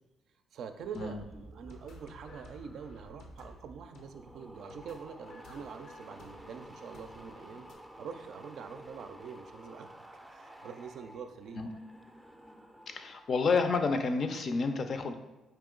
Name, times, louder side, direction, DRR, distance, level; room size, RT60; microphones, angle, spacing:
voice 1, 0.5-7.7 8.0-9.9 10.3-11.6, right 6 dB, 75° right, 7 dB, 0.4 m, -45 dB
sound 1, 0.6-7.7, left 3 dB, 85° left, 0.7 m, -56 dB
sound 2, 0.8-13.5 13.8-14.2, right 1 dB, 10° right, 0.4 m, -52 dB
voice 2, 12.9-15.2, left 4 dB, 50° left, 7 dB, 0.5 m, -30 dB
4.6 x 2.8 x 3.7 m, 1.1 s
cardioid pair, 90°, 0 cm